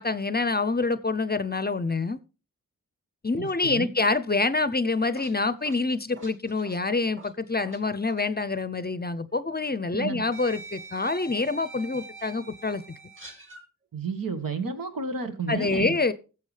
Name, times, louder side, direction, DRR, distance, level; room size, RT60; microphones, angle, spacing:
voice 1, 0.0-2.2 3.2-12.8 15.5-16.1, left 3 dB, 30° left, 0.6 m, -26 dB
voice 2, 3.4-3.9 9.9-10.2 13.9-16.0, right 4 dB, 75° right, 1.5 m, -31 dB
sound 1, 5.0-7.8 8.1-8.3 9.4-9.5 10.3-13.6, right 3 dB, 35° right, 2.9 m, -45 dB
16.5 x 7.0 x 3.3 m
wide cardioid pair, 55°, 34 cm